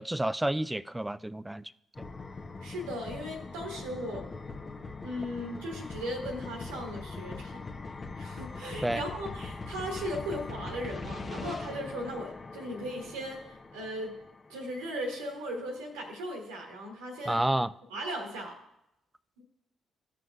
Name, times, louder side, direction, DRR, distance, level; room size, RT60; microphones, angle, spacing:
voice 1, 0.0-1.6 8.8-9.0 17.3-17.7, right 1 dB, 10° right, 0.3 m, -29 dB
sound 1, 1.9-14.7, left 3 dB, 40° left, 0.9 m, -41 dB
voice 2, 2.6-4.3 5.0-7.6 8.1-13.4 13.7-14.2 14.5-17.4 17.9-18.5, equal, 80° right, 1.3 m, -37 dB
14.5 x 6.1 x 2.3 m
hypercardioid pair, 40°, 0 cm